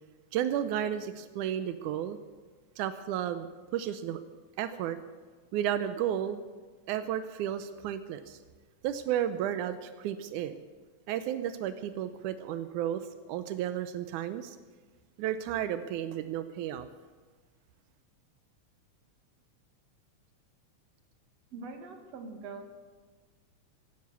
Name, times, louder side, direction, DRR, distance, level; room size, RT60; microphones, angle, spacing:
voice 1, 0.3-2.2 2.8-3.5 3.7-4.2 4.6-5.0 5.5-6.4 6.9-8.4 8.8-10.6 11.1-14.6 15.2-16.9, right 10 dB, 90° right, 11 dB, 2.2 m, -33 dB
voice 2, 21.5-22.8, right 3 dB, 60° right, 4 dB, 2.9 m, -43 dB
17.5 x 11.5 x 7.0 m, 1.5 s
omnidirectional pair, 3.4 m